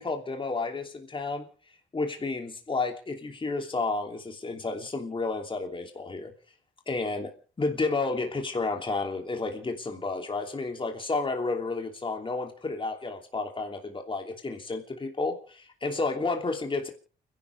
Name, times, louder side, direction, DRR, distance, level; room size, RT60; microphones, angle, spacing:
voice 1, 0.0-1.5 1.9-6.3 6.9-7.3 7.6-16.9, left 3 dB, 25° left, 3 dB, 3.0 m, -31 dB
30.0 x 11.5 x 3.4 m, 0.38 s
cardioid pair, 90°, 20 cm